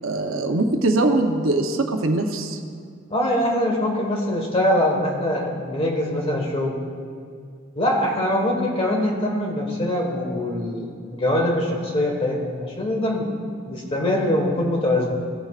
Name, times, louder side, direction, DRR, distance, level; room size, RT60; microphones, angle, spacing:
voice 1, 0.0-2.6, right 2 dB, 80° right, 4 dB, 0.9 m, -22 dB
voice 2, 3.1-6.8 7.7-13.3 13.7-15.1, left 1 dB, 25° left, 0 dB, 1.5 m, -23 dB
17.5 x 7.8 x 2.5 m, 2.2 s
head